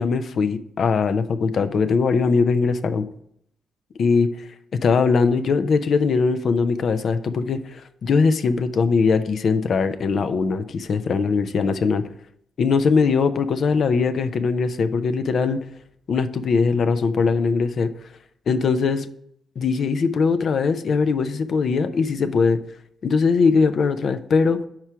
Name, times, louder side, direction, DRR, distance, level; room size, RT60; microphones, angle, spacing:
voice 1, 0.0-3.1 4.0-4.5 4.8-12.0 12.6-15.6 16.1-17.9 18.5-19.1 19.6-22.6 23.0-24.6, left 5 dB, 60° left, 10 dB, 0.5 m, -21 dB
4.7 x 4.5 x 5.6 m, 0.72 s
cardioid pair, 85°, 0 cm